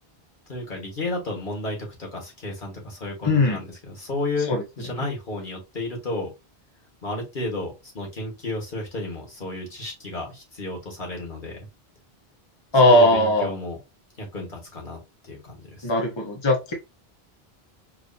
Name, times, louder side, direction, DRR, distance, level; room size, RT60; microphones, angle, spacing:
voice 1, 0.5-6.3 7.0-11.6 12.8-13.8 14.2-15.0 15.2-15.9, left 2 dB, 55° left, 0 dB, 1.7 m, -32 dB
voice 2, 3.2-3.6 4.5-4.6 12.7-13.5 15.8-16.7, left 1 dB, 30° left, 1 dB, 0.9 m, -18 dB
4.9 x 2.7 x 2.6 m, 0.25 s
omnidirectional pair, 1.0 m